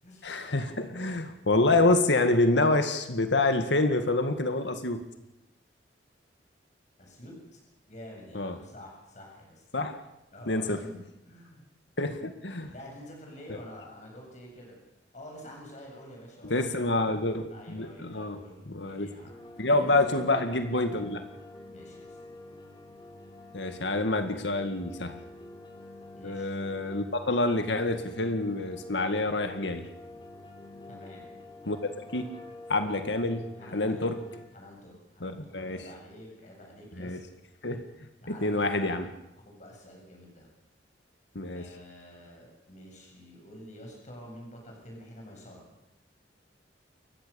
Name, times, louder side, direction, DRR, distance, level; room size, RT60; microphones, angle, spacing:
voice 1, 0.2-5.1 8.3-8.6 9.7-10.0 10.5-10.8 12.0-12.7 16.4-18.4 18.7-19.1 19.6-21.3 23.5-25.2 26.2-29.9 31.7-32.4 32.7-33.5 33.7-34.2 35.2-35.8 37.0-37.2 37.6-37.9 38.3-39.1 41.4-41.7, left 2 dB, 80° left, 8 dB, 1.9 m, -27 dB
voice 2, 7.0-7.3 7.9-9.6 10.3-11.0 11.3-11.6 12.7-14.8 15.1-16.8 17.5-19.9 21.7-22.2 26.2-26.5 30.9-31.3 33.6-34.1 34.5-37.2 37.6-37.7 38.2-39.0 39.4-40.5 41.5-45.6, left 1 dB, 40° left, -1 dB, 7.7 m, -48 dB
sound 1, 19.3-34.5, left 2 dB, 25° left, 3.3 m, -47 dB
29.0 x 15.0 x 7.1 m, 0.87 s
head